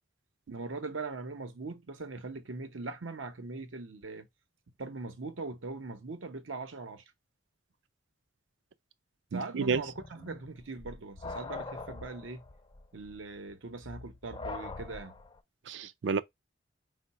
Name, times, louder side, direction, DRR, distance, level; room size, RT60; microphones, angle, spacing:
voice 1, 0.5-4.3 4.8-7.0 9.3-12.4 12.9-15.1, right 3 dB, 90° right, 0.8 m, -41 dB
voice 2, 9.3-9.8 15.7-16.2, right 5 dB, 70° right, 0.4 m, -30 dB
sound 1, 9.7-15.4, left 3 dB, 25° left, 0.4 m, -43 dB
4.6 x 2.2 x 4.1 m
head